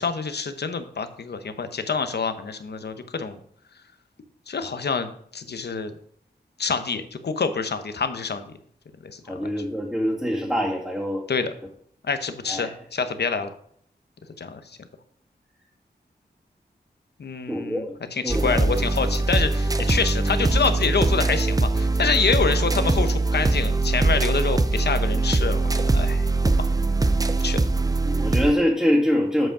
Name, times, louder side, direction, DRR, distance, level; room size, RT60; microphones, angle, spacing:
voice 1, 0.0-3.4 4.5-5.9 6.6-8.4 9.0-9.5 11.3-11.5 12.0-13.5 14.4-14.8 17.2-26.3 26.6-26.7 27.4-27.7, left 5 dB, 70° left, 9 dB, 0.9 m, -27 dB
voice 2, 9.3-11.2 12.5-12.7 17.5-17.9 18.2-18.6 28.0-29.5, equal, 5° right, -5 dB, 2.1 m, -24 dB
sound 1, 18.3-28.5, right 3 dB, 20° right, 0.5 m, -22 dB
7.7 x 5.2 x 5.0 m, 0.62 s
cardioid pair, 50°, 18 cm